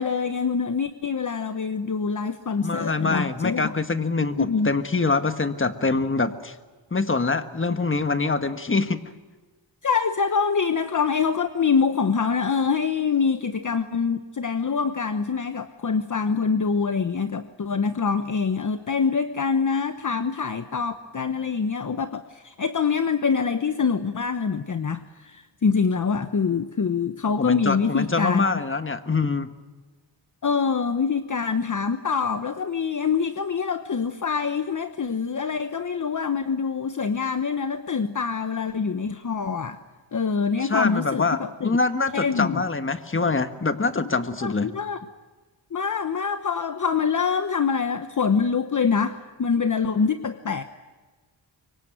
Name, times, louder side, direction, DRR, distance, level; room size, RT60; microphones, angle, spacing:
voice 1, 0.0-3.7 4.2-4.7 9.8-28.5 30.4-39.8 40.1-41.7 42.1-42.6 44.4-45.0 45.7-50.6, left 5 dB, 45° left, 9 dB, 1.0 m, -25 dB
voice 2, 2.6-6.5 6.9-9.0 27.4-29.5 40.6-44.7, left 4 dB, 25° left, 9 dB, 1.5 m, -24 dB
25.5 x 23.5 x 9.3 m, 1.3 s
wide cardioid pair, 115°, 44 cm